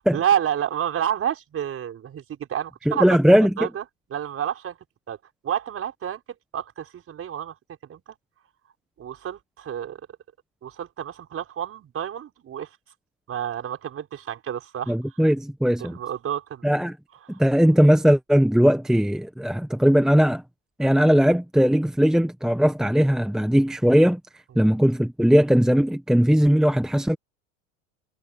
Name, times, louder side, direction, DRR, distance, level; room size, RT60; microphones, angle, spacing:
voice 1, 0.1-3.1 3.6-3.8 4.1-4.8 5.1-5.2 5.4-6.2 6.5-7.6 7.9-8.0 9.0-10.0 10.6-12.7 13.3-15.0 15.8-16.7 17.3-17.4, right 9 dB, 35° right, 5.8 m, -29 dB
voice 2, 2.9-3.5 14.9-16.0 16.6-16.9 17.4-20.4 20.8-24.2 24.6-27.2, equal, ahead, 1.1 m, -19 dB
hypercardioid pair, 110°, 41 cm